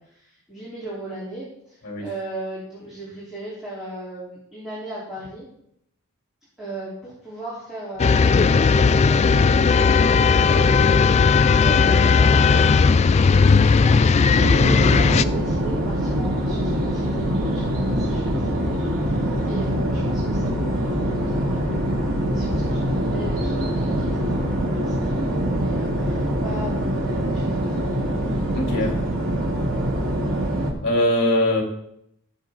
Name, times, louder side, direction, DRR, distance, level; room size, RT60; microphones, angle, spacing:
voice 1, 0.0-5.5 6.6-10.1 10.4-18.8 19.1-28.1 28.8-29.0, right 1 dB, ahead, -10 dB, 4.0 m, -37 dB
sound 1, 8.0-15.2, left 5 dB, 30° left, 0.3 m, -16 dB
sound 2, 14.4-30.7, equal, 65° right, 2.8 m, -24 dB
voice 2, 28.5-28.9 30.8-31.6, left 1 dB, 50° left, 0 dB, 3.4 m, -21 dB
17.0 x 7.5 x 4.0 m, 0.75 s
head